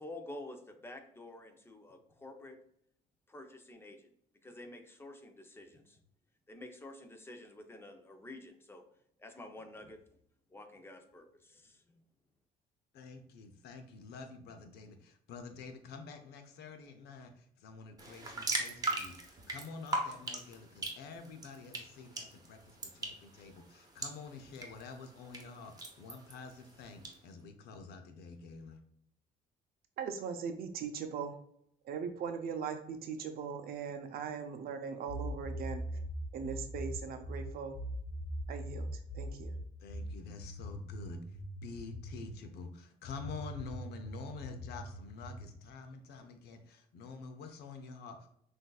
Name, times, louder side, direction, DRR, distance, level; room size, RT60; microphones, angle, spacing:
voice 1, 0.0-2.6 3.3-4.1 4.4-6.0 6.5-8.8 9.2-10.0 10.5-12.0, left 1 dB, 15° left, 5 dB, 0.7 m, -49 dB
voice 2, 12.9-28.8 39.8-48.3, left 4 dB, 75° left, 6 dB, 0.7 m, -48 dB
sound 1, 18.0-27.1, right 2 dB, 20° right, 0.9 m, -41 dB
voice 3, 30.0-31.3 31.8-35.8 36.3-37.8 38.5-38.9 39.1-39.5, right 6 dB, 65° right, 7 dB, 0.6 m, -39 dB
sound 2, 35.1-42.4 43.0-45.5, equal, 50° left, 1.2 m, -41 dB
6.1 x 2.6 x 2.3 m, 0.71 s
cardioid pair, 110°, 17 cm